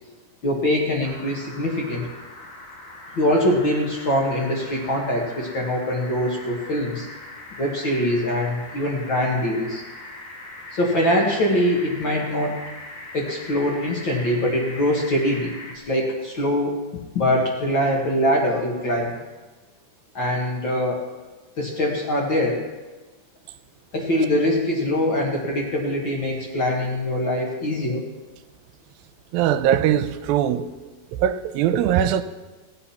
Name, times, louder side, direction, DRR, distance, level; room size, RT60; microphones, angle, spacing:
voice 1, 0.4-2.1 3.2-7.1 7.6-9.8 10.7-12.6 13.1-15.5 15.8-16.7 17.1-19.1 20.1-21.0 21.6-22.6 23.9-28.0, left 1 dB, 45° left, 1.8 m, -23 dB
sound 1, 1.0-15.8, left 2 dB, 85° left, 4.6 m, -41 dB
voice 2, 29.3-30.7 31.2-32.2, right 10 dB, 90° right, 2.4 m, -20 dB
17.0 x 8.7 x 5.7 m
omnidirectional pair, 4.2 m